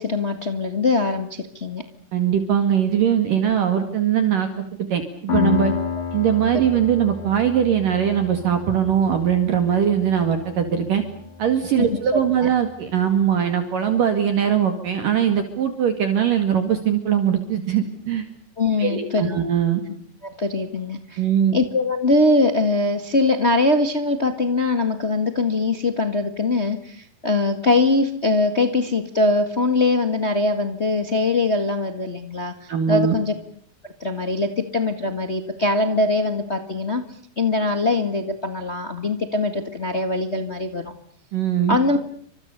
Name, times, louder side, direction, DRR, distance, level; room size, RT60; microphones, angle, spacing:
voice 1, 0.0-1.8 6.5-6.6 11.8-11.9 12.1-12.5 18.6-19.4 20.2-21.2 21.5-33.3 33.8-37.0 37.4-40.9 41.7-42.0, left 2 dB, 75° left, 7 dB, 0.6 m, -22 dB
voice 2, 2.1-5.7 6.1-11.0 11.4-18.3 18.8-19.8 21.2-21.6 32.7-33.1 41.3-41.8, right 8 dB, 55° right, 7 dB, 3.5 m, -21 dB
Piano, 5.3-12.7, left 6 dB, 55° left, 6.2 m, -30 dB
30.0 x 25.5 x 6.8 m, 0.63 s
omnidirectional pair, 4.7 m